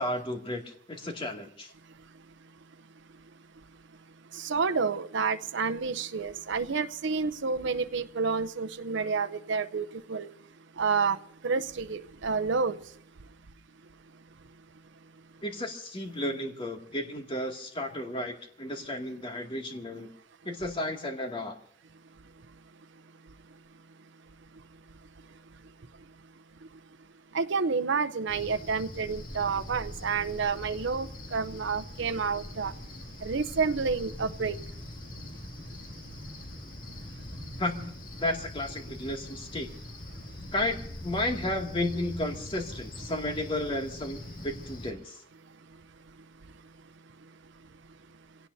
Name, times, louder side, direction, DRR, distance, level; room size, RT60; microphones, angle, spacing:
voice 1, 0.0-1.7 15.4-20.1 20.5-21.6 37.6-37.9 38.2-39.7 40.5-45.2, left 1 dB, 30° left, 2.3 m, -33 dB
voice 2, 4.4-10.3 10.8-11.2 11.4-12.8 27.3-32.7 33.2-34.6, right 5 dB, 65° right, 0.7 m, -29 dB
Cricket, 28.3-44.9, left 1 dB, 45° left, 2.5 m, -42 dB
27.5 x 17.5 x 2.7 m
head